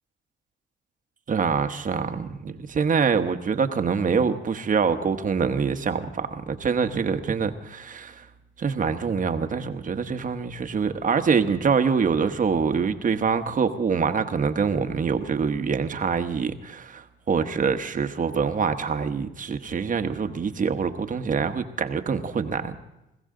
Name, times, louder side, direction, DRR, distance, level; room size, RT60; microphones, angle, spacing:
voice 1, 1.3-8.3 8.6-22.8, right 6 dB, 40° right, 8 dB, 1.1 m, -25 dB
21.0 x 16.0 x 3.8 m, 0.92 s
cardioid pair, 90°, 20 cm